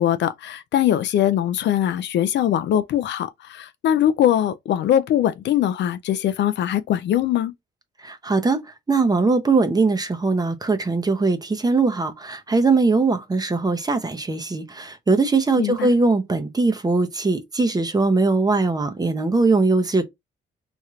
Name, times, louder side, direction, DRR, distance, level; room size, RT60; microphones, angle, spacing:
voice 1, 0.0-7.5 15.6-15.9, left 11 dB, 65° left, 0.4 m, -21 dB
voice 2, 8.0-8.6 8.9-20.1, right 3 dB, 20° right, 0.7 m, -20 dB
3.1 x 2.8 x 2.4 m
cardioid pair, 90°, 20 cm